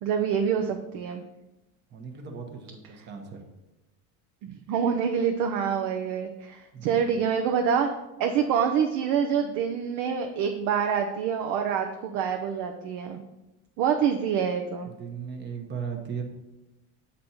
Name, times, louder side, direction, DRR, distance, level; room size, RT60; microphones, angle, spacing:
voice 1, 0.0-1.2 4.4-7.9 8.2-13.2 13.8-14.9, right 7 dB, 65° right, 4 dB, 0.7 m, -26 dB
voice 2, 1.9-3.4 6.7-7.1 14.8-16.2, right 6 dB, 25° right, 3 dB, 0.9 m, -37 dB
7.7 x 4.2 x 4.3 m, 0.98 s
cardioid pair, 135°, 39 cm